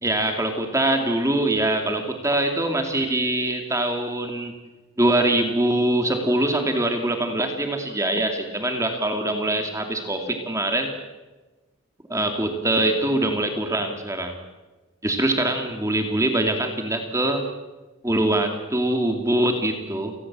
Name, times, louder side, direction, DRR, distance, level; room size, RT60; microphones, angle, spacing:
voice 1, 0.0-4.6 5.0-10.9 12.1-14.4 15.0-17.4 18.0-20.2, right 1 dB, 15° right, 4 dB, 2.6 m, -23 dB
29.5 x 20.0 x 7.6 m, 1.2 s
head